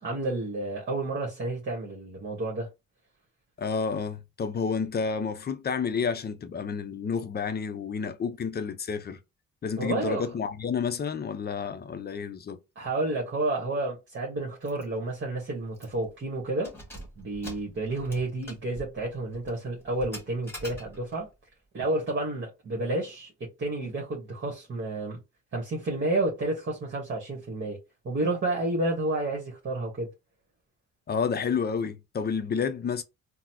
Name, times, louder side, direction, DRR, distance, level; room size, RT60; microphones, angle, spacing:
voice 1, 0.0-2.7 9.8-10.2 12.7-16.7 17.2-21.3 21.7-25.2 25.5-27.8 28.0-30.1, right 2 dB, 40° right, 1.3 m, -30 dB
voice 2, 3.6-9.2 9.6-12.6 31.1-33.0, left 6 dB, 35° left, 0.5 m, -30 dB
Keys jangling, 14.7-14.9 15.2-15.3 15.7-16.1 16.5-21.3, equal, 10° left, 1.6 m, -45 dB
3.8 x 2.1 x 2.9 m
cardioid pair, 90°, 30 cm